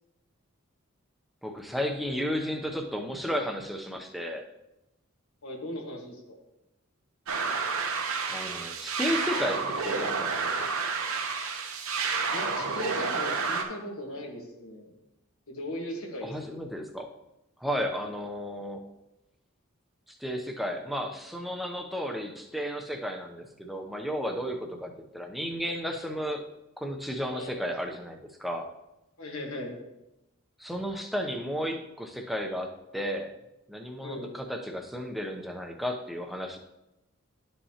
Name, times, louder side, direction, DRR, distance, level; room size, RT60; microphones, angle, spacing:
voice 1, 1.4-4.4 8.3-10.7 16.2-17.1 17.6-18.8 20.1-26.4 26.8-28.7 30.6-33.3 33.7-36.6, equal, ahead, 3 dB, 0.6 m, -33 dB
voice 2, 5.4-6.4 12.3-14.9 15.5-16.3 27.3-27.6 29.2-29.7 34.0-34.3, left 1 dB, 80° left, 1 dB, 1.5 m, -38 dB
sound 1, 7.3-13.6, right 4 dB, 75° right, 0.9 m, -30 dB
11.0 x 5.5 x 2.8 m, 0.92 s
head